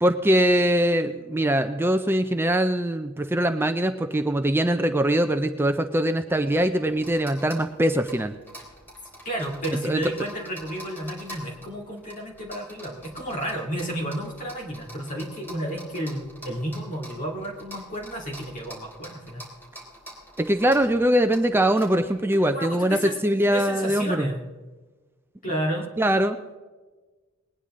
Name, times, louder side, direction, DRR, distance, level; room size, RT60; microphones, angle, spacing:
voice 1, 0.0-8.3 9.8-10.0 20.4-24.3 26.0-26.6, right 1 dB, 10° right, 7 dB, 0.5 m, -22 dB
sound 1, 6.3-22.3, equal, 10° left, 3.5 m, -46 dB
voice 2, 9.2-19.4 22.3-24.5 25.4-25.9, right 1 dB, 40° left, -1 dB, 2.4 m, -32 dB
20.5 x 10.0 x 3.7 m, 1.3 s
head